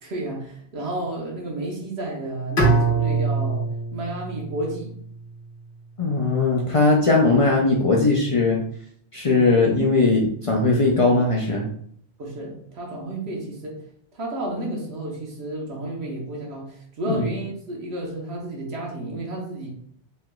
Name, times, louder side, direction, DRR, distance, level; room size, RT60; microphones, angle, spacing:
voice 1, 0.0-5.0 9.3-9.5 12.2-13.8 14.1-19.7, right 1 dB, 75° right, -1 dB, 1.2 m, -31 dB
Bowed string instrument, 2.6-5.6, right 3 dB, 75° left, 1.2 m, -24 dB
voice 2, 6.0-8.6 9.1-11.7 17.1-17.2, left 3 dB, 40° left, -2 dB, 0.5 m, -19 dB
4.3 x 3.0 x 2.2 m, 0.63 s
omnidirectional pair, 1.1 m